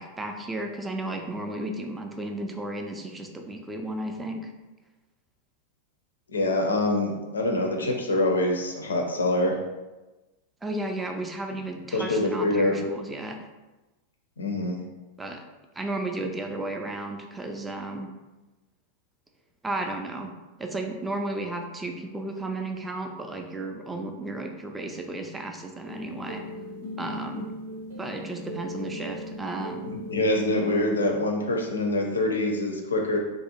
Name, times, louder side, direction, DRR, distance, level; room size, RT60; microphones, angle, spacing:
voice 1, 0.0-4.5 10.6-13.5 15.2-15.4 15.8-18.1 19.6-20.3 20.6-26.4 27.0-27.5 28.0-29.9, right 2 dB, 10° right, 3 dB, 0.3 m, -33 dB
voice 2, 6.3-9.6 11.9-12.8 14.4-14.8 30.1-33.2, left 1 dB, 70° left, 1 dB, 0.4 m, -25 dB
sound 1, 25.8-31.1, equal, 60° right, 0.6 m, -38 dB
2.6 x 2.0 x 2.8 m, 1.1 s
figure-of-eight pair, 90°, 0 cm